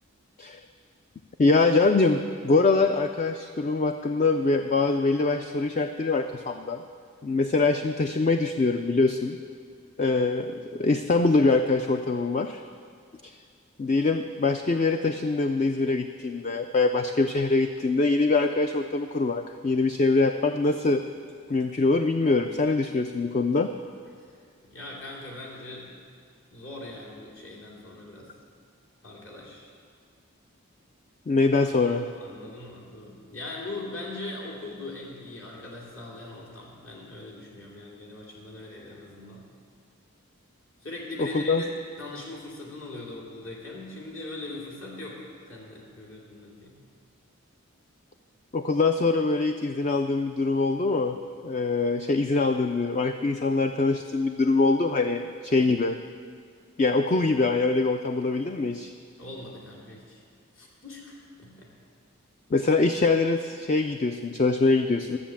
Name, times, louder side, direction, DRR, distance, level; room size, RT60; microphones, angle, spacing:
voice 1, 1.4-6.8 7.2-9.4 10.0-12.6 13.2-13.4 13.8-21.0 21.5-23.7 31.3-32.0 41.2-41.6 48.5-51.2 51.4-56.0 56.8-58.9 62.5-65.2, left 3 dB, 35° left, 7 dB, 0.3 m, -24 dB
voice 2, 24.3-25.9 26.5-28.3 29.0-29.7 31.8-39.4 40.8-41.7 42.0-46.7 59.2-60.2 60.6-61.7, left 2 dB, 70° left, -4 dB, 2.5 m, -40 dB
12.5 x 7.4 x 7.2 m, 2.1 s
head